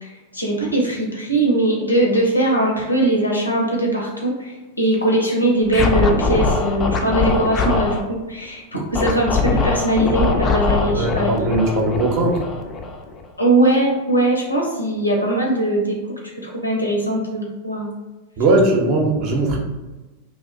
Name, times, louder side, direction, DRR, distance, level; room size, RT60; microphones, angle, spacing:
voice 1, 0.0-11.3 11.6-11.7 13.4-16.0 16.4-17.9, right 1 dB, 85° left, -1 dB, 0.6 m, -20 dB
Scratching (performance technique), 5.7-8.0 8.9-13.3, left 4 dB, 25° left, 0.3 m, -21 dB
voice 2, 10.9-12.4 18.4-19.6, right 2 dB, 40° right, 0 dB, 0.6 m, -19 dB
2.5 x 2.1 x 2.4 m, 1.1 s
figure-of-eight pair, 90°, 0 cm